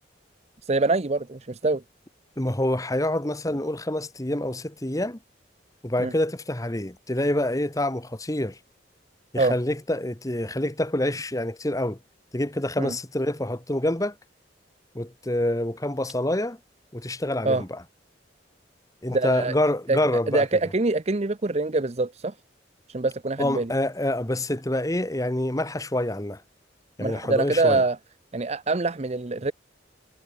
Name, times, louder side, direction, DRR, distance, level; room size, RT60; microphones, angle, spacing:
voice 1, 0.6-1.8 6.0-6.1 9.4-9.5 12.8-12.9 17.4-17.6 19.1-19.5 19.9-20.0 20.3-22.3 22.9-23.7 27.0-28.0 28.3-29.5, right 3 dB, 35° right, 0.7 m, -24 dB
voice 2, 2.4-5.2 5.8-8.6 9.3-12.0 12.3-14.1 14.9-16.6 16.9-17.8 19.0-20.4 23.4-26.4 27.0-27.8, left 1 dB, 20° left, 1.3 m, -26 dB
head